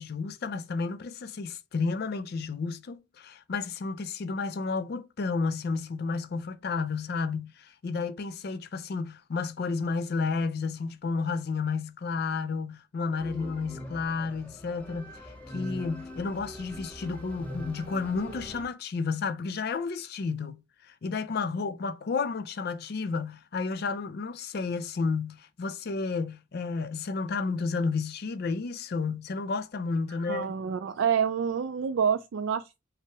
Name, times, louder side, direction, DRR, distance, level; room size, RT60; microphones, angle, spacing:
voice 1, 0.0-30.5, left 4 dB, 55° left, 0.4 m, -32 dB
sound 1, 13.2-18.7, equal, 10° left, 0.9 m, -42 dB
voice 2, 30.3-32.8, right 7 dB, 65° right, 0.3 m, -27 dB
5.5 x 2.0 x 4.5 m
head